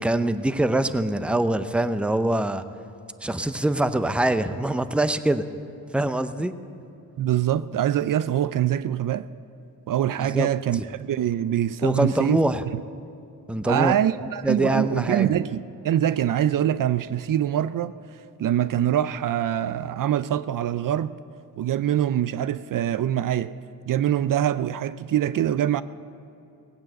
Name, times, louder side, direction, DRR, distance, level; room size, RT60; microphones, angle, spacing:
voice 1, 0.0-2.6 3.2-5.4 5.9-6.5 10.2-10.8 11.8-12.6 13.5-14.0 14.4-15.3, right 1 dB, 5° right, 0.6 m, -24 dB
voice 2, 7.2-9.3 9.9-12.4 12.7-12.8 13.6-17.9 18.4-21.1 21.6-23.5 23.9-25.8, right 11 dB, 60° right, 0.5 m, -24 dB
17.5 x 8.9 x 7.7 m
cardioid pair, 75°, 36 cm